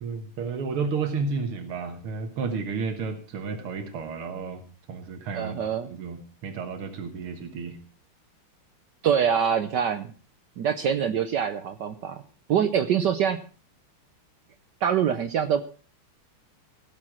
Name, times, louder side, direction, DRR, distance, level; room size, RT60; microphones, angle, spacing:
voice 1, 0.0-5.6 5.9-7.8, right 5 dB, 90° right, 6 dB, 2.3 m, -32 dB
voice 2, 5.3-5.9 9.0-10.1 10.6-12.2 12.5-13.4 14.8-15.6, right 8 dB, 65° right, 10 dB, 1.2 m, -24 dB
17.0 x 7.7 x 6.1 m, 0.39 s
omnidirectional pair, 2.4 m